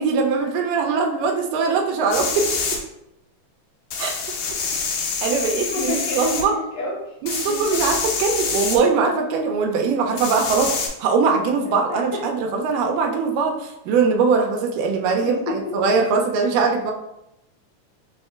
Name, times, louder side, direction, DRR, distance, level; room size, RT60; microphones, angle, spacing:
voice 1, 0.0-2.6 4.0-4.1 4.9-6.5 7.2-16.9, right 5 dB, 90° right, 2 dB, 2.2 m, -21 dB
sound 1, 2.1-2.8 3.9-6.4 7.3-8.8 10.2-10.9, left 5 dB, 90° left, 2.5 m, -26 dB
voice 2, 5.7-7.1 7.5-7.8 11.9-12.0 15.2-15.9, left 2 dB, 70° left, -5 dB, 1.7 m, -29 dB
5.3 x 3.6 x 2.3 m, 0.85 s
omnidirectional pair, 3.7 m